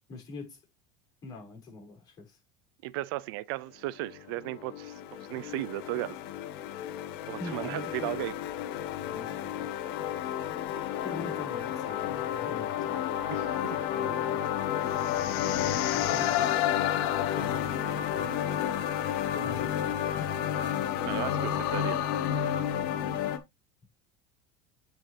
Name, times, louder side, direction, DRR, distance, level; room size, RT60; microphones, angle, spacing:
voice 1, 0.1-0.6 1.2-2.4 7.4-8.2 9.0-9.7 11.0-13.0 13.9-14.4 15.9-16.3 17.2-18.4 19.3-20.3, left 3 dB, 30° left, 5.1 m, -44 dB
voice 2, 2.8-6.2 7.3-8.3 13.3-13.8 21.0-22.0, right 18 dB, 70° right, 0.4 m, -35 dB
sound 1, 4.1-23.4, left 10 dB, 70° left, 1.3 m, -31 dB
8.9 x 5.0 x 3.2 m
supercardioid pair, 150°, 13 cm